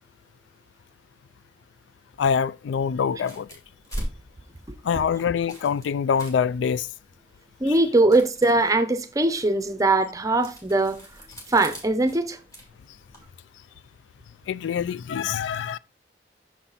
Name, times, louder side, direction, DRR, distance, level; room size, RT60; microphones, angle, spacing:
voice 1, 2.2-3.5 4.8-6.9 14.5-15.8, left 7 dB, 80° left, 0.3 m, -25 dB
sound 1, 3.1-13.3, equal, 20° left, 2.2 m, -42 dB
voice 2, 7.6-11.0 11.5-12.4, right 2 dB, 20° right, 0.6 m, -21 dB
6.2 x 5.7 x 3.9 m
head